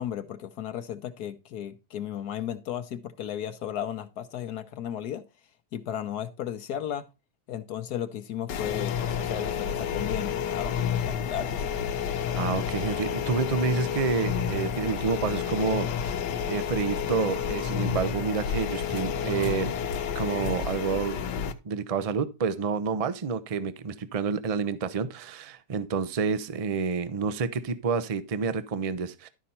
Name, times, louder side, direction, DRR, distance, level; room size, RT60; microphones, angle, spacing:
voice 1, 0.0-5.2 5.7-7.0 7.5-11.6, left 10 dB, 70° left, 1.2 m, -34 dB
sound 1, 8.5-21.5, left 8 dB, 90° left, 1.5 m, -30 dB
voice 2, 12.3-19.8 20.1-21.2 21.6-29.3, right 5 dB, 45° right, 0.4 m, -29 dB
12.0 x 5.4 x 4.2 m
omnidirectional pair, 1.8 m